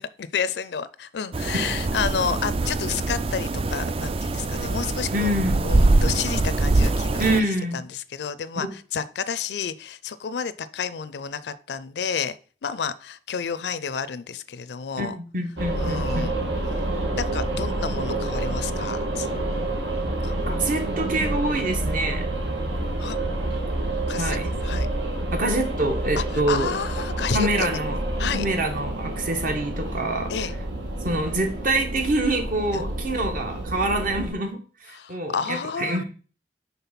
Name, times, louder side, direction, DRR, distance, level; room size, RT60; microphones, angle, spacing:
voice 1, 0.0-5.3 5.6-7.4 7.7-12.4 12.6-15.2 15.8-16.4 17.1-19.3 20.2-20.4 23.0-23.2 24.1-24.9 26.2-27.8 28.2-28.5 30.3-30.5 32.7-32.8 34.9-36.0, left 6 dB, 70° left, 16 dB, 0.4 m, -30 dB
sound 1, 1.3-7.4, right 2 dB, 35° right, 0.4 m, -23 dB
voice 2, 5.1-5.7 7.2-7.8 8.5-8.7 15.0-16.3 20.5-22.6 24.1-24.5 25.3-26.7 27.3-28.0 28.3-30.3 31.0-34.6 35.1-36.0, right 1 dB, 50° right, 5 dB, 1.2 m, -26 dB
sound 2, 15.6-34.3, right 1 dB, 85° right, 1.6 m, -28 dB
5.7 x 3.7 x 5.8 m, 0.39 s
head